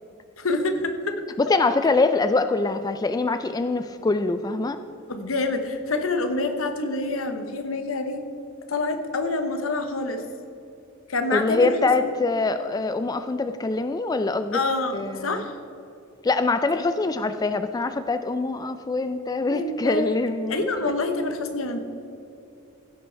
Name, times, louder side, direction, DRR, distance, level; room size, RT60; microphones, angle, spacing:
voice 1, 0.4-1.1 5.1-8.2 8.7-10.2 11.1-11.7 12.0-12.1 14.5-15.5 19.5-20.2 20.5-21.8, left 2 dB, 85° left, 6 dB, 1.0 m, -26 dB
voice 2, 1.4-4.8 11.3-14.6 14.9-15.5 16.2-20.6, left 3 dB, 20° left, 10 dB, 0.3 m, -24 dB
16.0 x 5.5 x 4.5 m, 2.6 s
head